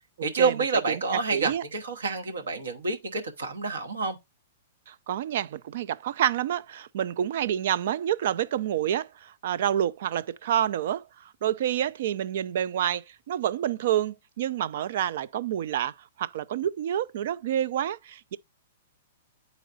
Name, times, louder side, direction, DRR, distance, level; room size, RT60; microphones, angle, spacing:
voice 1, 0.2-4.2, right 4 dB, 90° right, 1.1 m, -28 dB
voice 2, 1.3-1.6 4.9-18.4, right 10 dB, 65° right, 0.3 m, -28 dB
9.2 x 4.0 x 2.5 m
hypercardioid pair, 130°, 0 cm